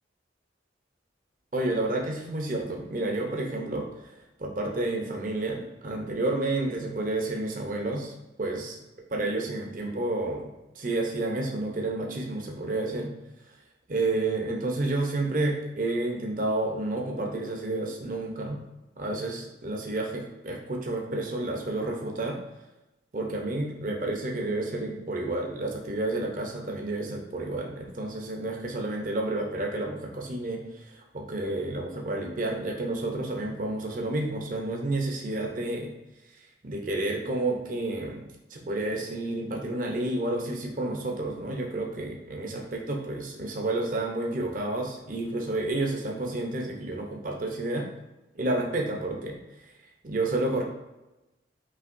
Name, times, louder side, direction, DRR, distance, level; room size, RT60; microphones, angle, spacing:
voice 1, 1.5-8.1 8.4-8.8 9.1-13.1 13.9-18.6 19.0-22.4 23.1-35.9 36.6-38.2 38.5-47.9 48.3-49.4 50.0-50.6, right 2 dB, 45° right, 1 dB, 0.7 m, -30 dB
5.7 x 2.8 x 2.6 m, 0.99 s
head